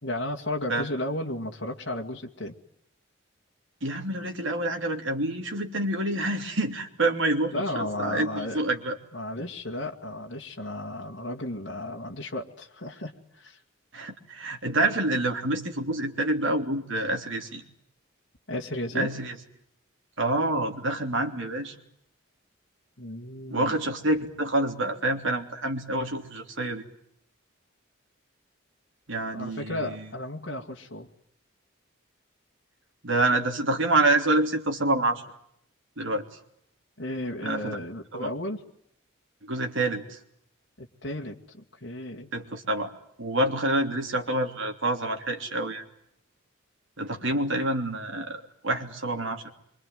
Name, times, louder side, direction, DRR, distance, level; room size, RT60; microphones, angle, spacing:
voice 1, 0.0-2.6 7.5-8.6 9.1-13.6 18.5-19.1 23.0-23.8 29.3-31.1 37.0-38.6 40.8-42.3 47.2-47.5, left 1 dB, 60° left, 1 dB, 2.2 m, -34 dB
voice 2, 3.8-9.0 13.9-17.6 18.9-19.4 20.2-21.7 23.5-26.8 29.1-30.1 33.0-35.2 36.0-36.2 37.4-37.8 38.1-38.3 39.4-40.2 42.3-42.9 43.2-45.8 47.0-49.5, right 2 dB, 70° right, 4 dB, 3.3 m, -27 dB
26.0 x 24.5 x 9.3 m, 0.72 s
head